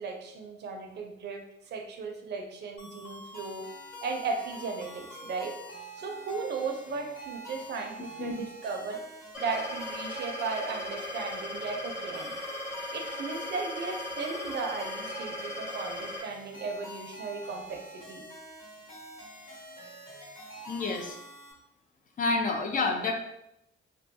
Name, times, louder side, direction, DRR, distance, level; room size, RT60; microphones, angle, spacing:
voice 1, 0.0-3.7 4.0-5.5 5.9-9.0 9.4-12.3 12.9-18.2, right 4 dB, 60° right, 3 dB, 0.5 m, -36 dB
sound 1, 2.8-21.5, equal, 80° left, 1.4 m, -46 dB
sound 2, 9.3-16.2, left 1 dB, ahead, 0.8 m, -38 dB
voice 2, 20.7-21.2 22.2-23.1, left 3 dB, 45° left, 2 dB, 0.5 m, -29 dB
2.2 x 2.2 x 2.6 m, 0.82 s
cardioid pair, 90°, 20 cm